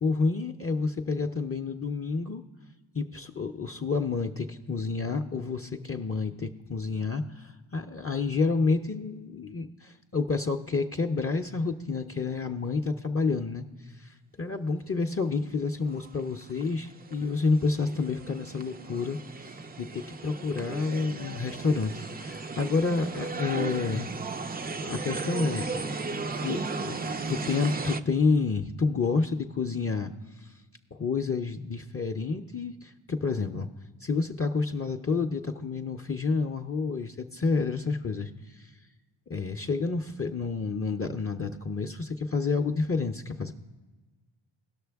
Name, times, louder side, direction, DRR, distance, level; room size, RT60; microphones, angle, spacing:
voice 1, 0.0-2.4 2.9-13.6 13.9-24.1 24.7-25.7 26.4-27.0 27.3-30.5 30.9-33.7 34.0-38.7 39.3-43.5, left 4 dB, 30° left, 5 dB, 0.5 m, -29 dB
sound 1, 15.9-28.0, right 4 dB, 20° right, 0.3 m, -36 dB
17.5 x 6.2 x 3.4 m, 1.3 s
cardioid pair, 60°, 48 cm